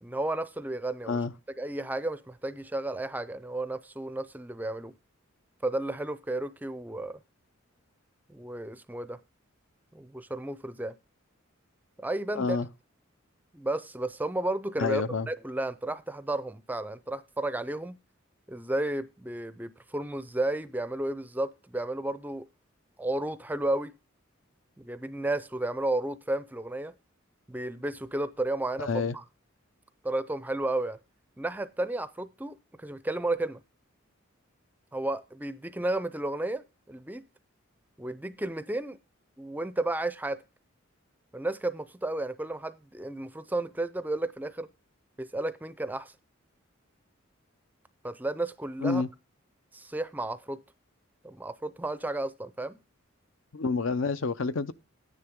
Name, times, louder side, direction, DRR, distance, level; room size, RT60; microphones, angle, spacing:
voice 1, 0.0-1.2 1.6-4.9 5.6-7.1 8.3-9.2 9.9-10.9 12.0-12.6 13.5-18.0 18.5-22.5 23.0-23.9 24.8-26.9 27.5-28.9 29.1-29.2 30.0-31.0 31.4-33.6 34.9-37.2 38.0-39.0 39.4-40.4 41.3-44.7 45.2-46.1 48.0-49.0 49.7-50.6 51.2-52.8, right 2 dB, 10° right, 0.4 m, -32 dB
voice 2, 12.3-12.7 14.8-15.3 28.8-29.1 48.8-49.1 53.5-54.7, left 4 dB, 65° left, 0.6 m, -28 dB
11.0 x 9.9 x 3.6 m
head